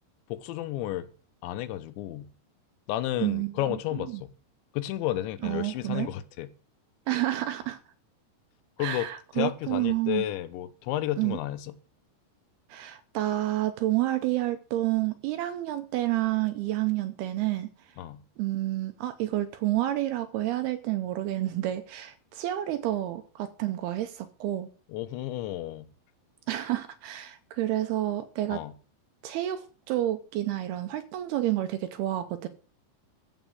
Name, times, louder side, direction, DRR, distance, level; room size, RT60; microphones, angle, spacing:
voice 1, 0.3-1.1 1.4-2.3 2.9-4.3 4.7-6.5 8.8-9.1 9.4-11.8 18.0-18.2 24.9-25.9 28.5-28.7, left 13 dB, 85° left, 3.1 m, -32 dB
voice 2, 3.2-4.2 5.4-6.1 7.1-7.8 8.8-10.3 11.2-11.4 12.7-17.7 18.4-24.7 26.5-28.6 29.2-32.5, right 14 dB, 80° right, 2.4 m, -29 dB
14.5 x 5.2 x 7.8 m
omnidirectional pair, 5.1 m